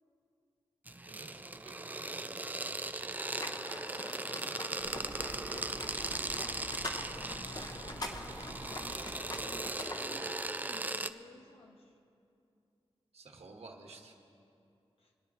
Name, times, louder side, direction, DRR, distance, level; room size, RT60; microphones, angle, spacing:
sound 1, 0.9-11.1, right 2 dB, 15° right, 0.3 m, -38 dB
voice 1, 1.1-3.2 4.4-5.0 7.6-9.3 13.1-14.1, right 3 dB, 80° right, 1 dB, 1.3 m, -54 dB
sound 2, 3.3-10.4, left 2 dB, 35° left, 0.9 m, -44 dB
sound 3, 4.8-9.9, right 1 dB, 35° right, 1.8 m, -49 dB
voice 2, 7.3-12.0 15.0-15.1, left 2 dB, 65° left, 1 dB, 1.4 m, -55 dB
27.0 x 10.0 x 2.8 m, 2.6 s
wide cardioid pair, 100°, 11 cm